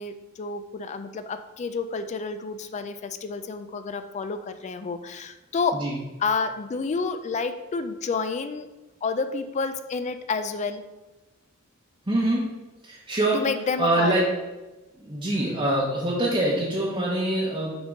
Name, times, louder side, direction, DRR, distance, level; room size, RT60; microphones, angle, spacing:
voice 1, 0.0-5.8 6.2-8.7 9.0-10.8 13.3-14.2, left 4 dB, 35° left, 9 dB, 0.3 m, -29 dB
voice 2, 12.1-12.5 12.8-13.4 13.8-14.2 15.0-17.8, right 1 dB, 25° right, -6 dB, 0.9 m, -24 dB
5.9 x 3.7 x 5.2 m, 1.1 s
head